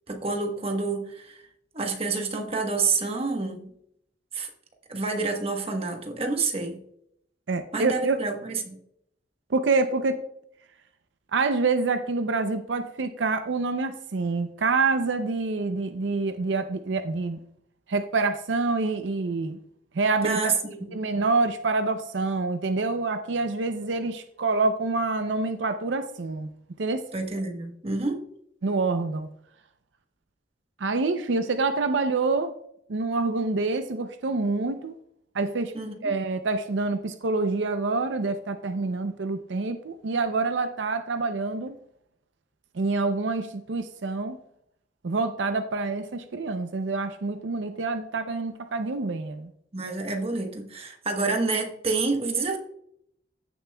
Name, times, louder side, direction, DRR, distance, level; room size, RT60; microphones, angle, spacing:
voice 1, 0.1-1.4 1.7-3.7 4.3-4.5 4.9-6.8 7.7-8.8 20.2-21.0 27.1-28.2 35.7-36.0 49.7-52.6, right 3 dB, 35° right, 3 dB, 1.2 m, -28 dB
voice 2, 7.5-8.2 9.5-10.2 11.3-17.4 17.9-19.6 19.9-20.4 20.9-26.5 26.8-27.0 28.6-29.3 30.8-32.5 32.9-34.9 35.3-35.7 36.0-41.8 42.7-44.4 45.0-49.5, right 3 dB, 80° right, 9 dB, 0.6 m, -26 dB
15.0 x 6.8 x 2.2 m, 0.73 s
head